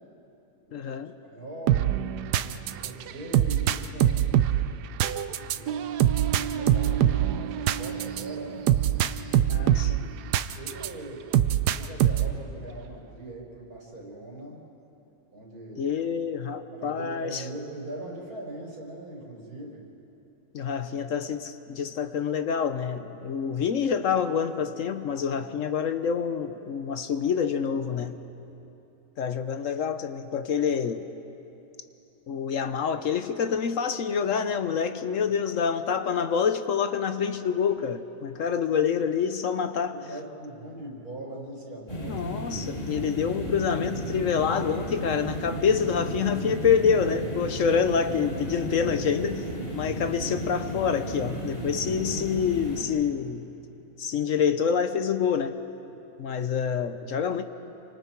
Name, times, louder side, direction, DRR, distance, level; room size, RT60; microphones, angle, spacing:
voice 1, 0.7-1.1 9.5-10.0 15.8-17.4 20.5-28.2 29.2-31.0 32.3-40.0 42.1-49.5 49.7-53.5 54.0-55.5 56.2-57.4, left 7 dB, 60° left, 10 dB, 1.0 m, -27 dB
voice 2, 1.2-2.1 2.6-4.4 5.3-6.0 6.4-8.6 9.2-11.3 11.6-14.6 15.3-16.0 16.7-19.8 27.9-28.0 38.3-38.4 39.9-42.3, right 1 dB, 65° right, -3 dB, 5.2 m, -41 dB
sound 1, 1.7-10.9 11.3-12.4, right 11 dB, 80° right, 1.2 m, -24 dB
sound 2, 41.9-52.8, right 1 dB, 35° left, 3.3 m, -34 dB
29.0 x 25.0 x 4.6 m, 2.9 s
omnidirectional pair, 1.7 m